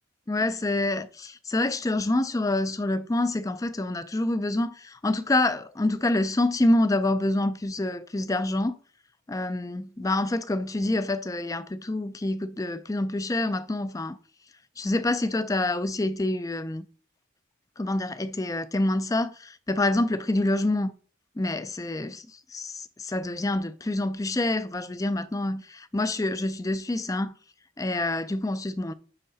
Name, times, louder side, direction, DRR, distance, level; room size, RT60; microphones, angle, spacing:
voice 1, 0.3-8.8 9.3-14.2 14.8-16.9 17.8-20.9 21.4-27.3 27.8-28.9, left 2 dB, 15° left, 0.4 m, -27 dB
9.9 x 3.8 x 5.4 m
head